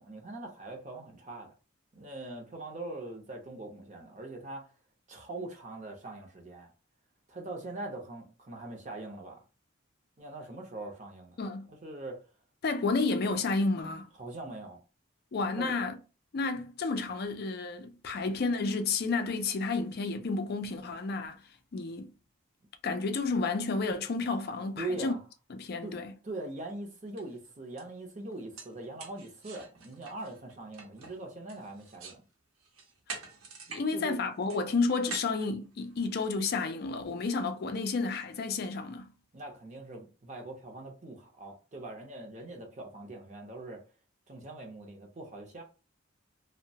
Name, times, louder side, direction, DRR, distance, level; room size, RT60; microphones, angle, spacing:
voice 1, 0.0-1.5 1.9-4.7 5.1-6.7 7.3-9.4 10.2-11.4 11.7-12.2 14.2-14.8 15.6-15.7 16.5-16.6 24.8-25.2 25.8-25.9 26.2-32.2 33.9-34.2 39.3-43.8 44.3-45.6, right 2 dB, 35° right, 0.7 m, -42 dB
voice 2, 11.4-11.7 12.6-14.1 15.3-16.0 16.3-21.4 21.7-22.1 22.8-25.1 25.5-26.1 33.7-39.1, left 3 dB, 45° left, 0.4 m, -31 dB
sound 1, 26.7-26.8 27.2-27.4 27.8-27.9 28.3-32.2 32.6-33.9 34.1-36.3, right 4 dB, 85° right, 0.8 m, -46 dB
2.7 x 2.1 x 2.7 m
head